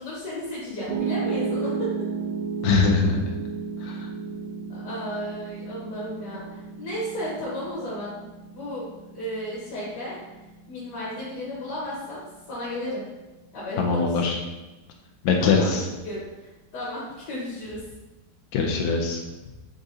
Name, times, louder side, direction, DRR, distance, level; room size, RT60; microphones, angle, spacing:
voice 1, 0.0-1.9 4.7-8.2 8.5-10.2 10.7-12.2 12.5-13.0 13.5-14.3 15.4-17.8, left 1 dB, 60° left, -6 dB, 1.5 m, -34 dB
Piano, 0.9-13.1, right 5 dB, 65° right, 1.0 m, -34 dB
voice 2, 2.6-3.2 3.8-4.1 13.8-14.4 15.2-15.8 18.5-19.2, left 4 dB, 80° left, 1 dB, 0.8 m, -22 dB
4.0 x 3.6 x 2.6 m, 1.1 s
omnidirectional pair, 2.2 m